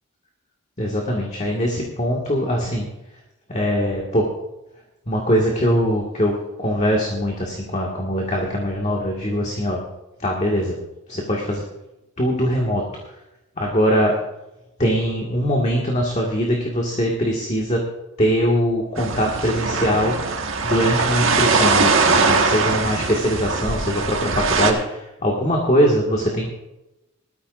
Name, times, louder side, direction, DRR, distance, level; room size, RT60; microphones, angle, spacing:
voice 1, 0.8-2.9 3.5-4.2 5.1-6.3 6.6-9.8 10.2-10.8 11.1-11.6 12.2-12.8 13.6-14.2 14.8-17.8 18.2-20.1 20.6-26.5, equal, 30° left, -1 dB, 1.8 m, -21 dB
sound 1, 19.0-24.7, right 4 dB, 65° right, 1.5 m, -21 dB
20.0 x 13.5 x 2.5 m, 0.95 s
head